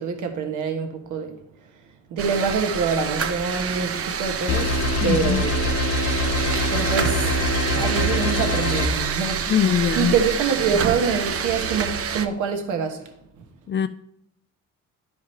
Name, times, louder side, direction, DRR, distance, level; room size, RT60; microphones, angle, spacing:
voice 1, 0.0-1.4 1.7-1.8 2.1-5.8 6.5-9.5 9.9-13.4, right 5 dB, 80° right, 1.2 m, -26 dB
sound 1, 2.2-12.3, right 7 dB, 50° right, 0.8 m, -27 dB
sound 2, 4.5-8.9, left 1 dB, 55° left, 0.8 m, -24 dB
voice 2, 5.0-5.4 9.5-10.2 13.7-13.9, left 8 dB, 40° left, 0.4 m, -22 dB
11.0 x 4.8 x 4.4 m
cardioid pair, 90°, 30 cm